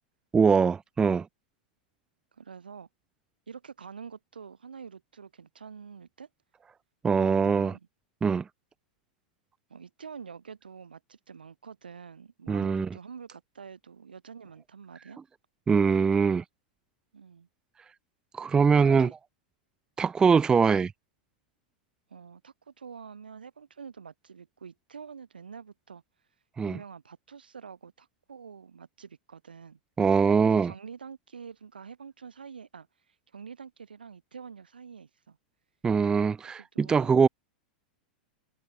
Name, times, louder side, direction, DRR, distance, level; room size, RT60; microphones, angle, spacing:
voice 1, 0.3-1.3 7.0-7.7 8.2-8.4 12.5-12.9 15.7-16.4 18.3-19.1 20.0-20.9 26.6-26.8 30.0-30.7 35.8-37.3, right 5 dB, 15° right, 0.4 m, -22 dB
voice 2, 2.3-2.9 3.5-6.3 7.0-7.9 9.7-15.2 17.1-17.5 18.5-19.1 22.1-26.0 26.6-29.8 30.4-32.9 33.3-35.4 36.4-37.3, right 6 dB, 90° right, 3.9 m, -46 dB
hypercardioid pair, 105°, 5 cm